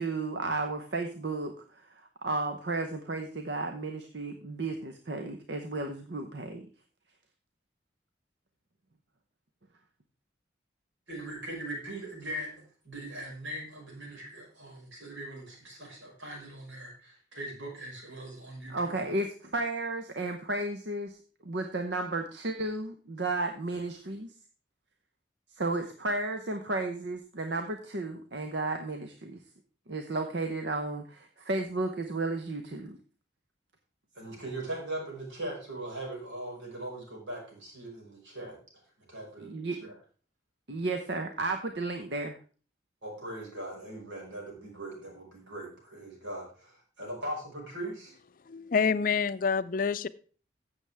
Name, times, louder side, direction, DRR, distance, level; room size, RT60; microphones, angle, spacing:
voice 1, 0.0-6.7 18.7-21.2 21.4-24.3 25.6-29.4 29.9-33.0 39.4-39.8 40.7-42.4, right 2 dB, 70° right, 5 dB, 0.9 m, -33 dB
voice 2, 11.1-19.0 34.1-38.6 39.0-39.5 39.8-39.9 43.0-48.1, right 1 dB, 90° right, -2 dB, 5.1 m, -40 dB
voice 3, 48.5-50.1, left 5 dB, 45° left, 14 dB, 0.4 m, -27 dB
15.0 x 7.1 x 3.5 m, 0.39 s
head